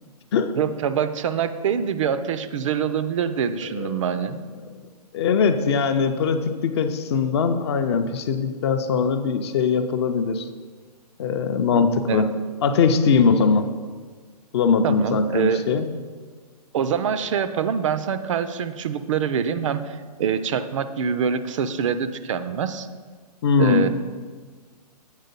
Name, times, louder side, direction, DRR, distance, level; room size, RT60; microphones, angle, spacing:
voice 1, 0.6-4.4 12.1-12.3 14.8-15.6 16.7-22.9 23.6-23.9, right 7 dB, 50° right, 11 dB, 0.4 m, -25 dB
voice 2, 3.7-4.2 4.7-4.8 5.1-10.5 11.2-12.3 12.6-13.7 14.5-15.9 23.4-23.8, left 5 dB, 40° left, 8 dB, 0.4 m, -21 dB
8.2 x 3.7 x 5.3 m, 1.5 s
hypercardioid pair, 135°, 21 cm